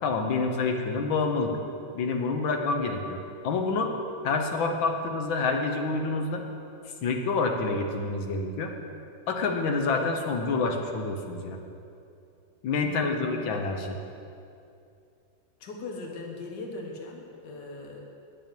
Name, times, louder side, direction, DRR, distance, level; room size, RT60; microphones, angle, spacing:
voice 1, 0.0-1.6 1.9-3.9 4.2-6.4 7.0-8.7 9.3-11.6 12.6-14.0, left 3 dB, 85° left, 3 dB, 1.8 m, -27 dB
voice 2, 12.8-13.4 15.6-18.0, left 3 dB, 65° left, 1 dB, 2.0 m, -40 dB
10.0 x 7.4 x 9.1 m, 2.6 s
omnidirectional pair, 2.1 m